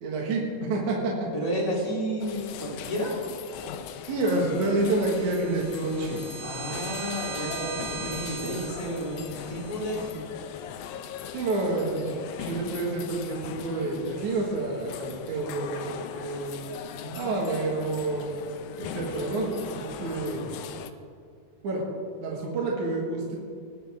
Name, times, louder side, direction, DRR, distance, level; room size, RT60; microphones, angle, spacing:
voice 1, 0.0-1.3 4.1-6.3 11.3-16.6 17.1-18.3 18.8-20.5 21.6-21.9 22.2-23.4, right 2 dB, 60° right, -2 dB, 2.8 m, -28 dB
voice 2, 1.3-3.2 6.4-10.2 16.9-17.4, equal, 10° left, -5 dB, 2.6 m, -32 dB
sound 1, 2.2-20.9, left 9 dB, 80° left, 1.8 m, -40 dB
sound 2, 4.3-10.1, right 5 dB, 80° right, 1.0 m, -40 dB
20.0 x 10.0 x 3.5 m, 2.2 s
omnidirectional pair, 4.0 m